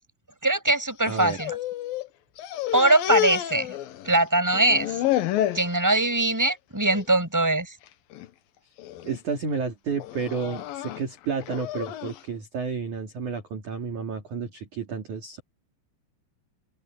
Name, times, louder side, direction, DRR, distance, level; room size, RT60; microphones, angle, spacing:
voice 1, 0.4-1.6 2.7-3.8 4.0-5.0 5.5-7.7, right 2 dB, 5° right, 6.2 m, -22 dB
sound 1, 1.0-2.1 2.4-4.2 4.5-5.7 6.2-6.5 6.9-7.1 7.9-8.3 8.8-9.2 10.0-12.2, left 13 dB, 75° left, 2.1 m, -30 dB
voice 2, 1.1-1.4 9.0-15.4, right 5 dB, 45° right, 3.5 m, -31 dB
open air
omnidirectional pair, 5.8 m